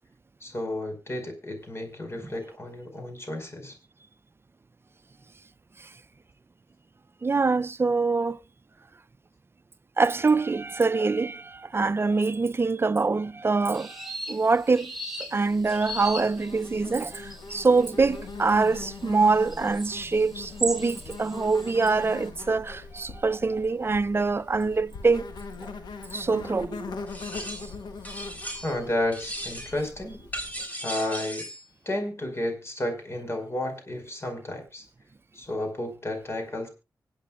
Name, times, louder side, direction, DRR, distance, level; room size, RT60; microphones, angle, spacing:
voice 1, 0.4-3.7 28.6-30.2 30.8-31.4 31.8-34.8 35.3-36.7, left 1 dB, 35° left, 4.9 m, -32 dB
voice 2, 7.2-8.4 10.0-14.9 15.2-25.3 25.6-25.7 26.1-26.9, right 4 dB, 35° right, 0.5 m, -24 dB
sound 1, 13.7-22.1, right 2 dB, 5° right, 3.4 m, -38 dB
Insect, 15.5-30.6, left 4 dB, 85° left, 1.3 m, -41 dB
sound 2, 27.1-27.8 28.0-28.8 29.1-29.8 30.3-31.7, equal, 20° left, 4.0 m, -37 dB
25.5 x 8.5 x 2.4 m
cardioid pair, 55°, 7 cm